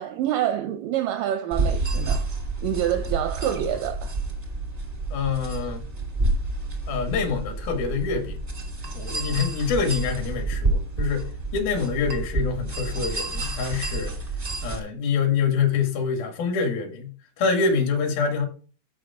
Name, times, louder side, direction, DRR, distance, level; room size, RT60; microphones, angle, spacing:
voice 1, 0.0-2.2 2.6-4.1, right 11 dB, 80° right, 1.9 m, -27 dB
sound 1, 1.5-14.8, right 2 dB, 50° right, 0.6 m, -29 dB
voice 2, 5.1-5.9 6.9-8.4 8.9-11.3 11.5-14.1 14.6-17.1 17.4-18.5, left 5 dB, 70° left, 3.7 m, -25 dB
14.0 x 5.2 x 3.6 m
omnidirectional pair, 4.4 m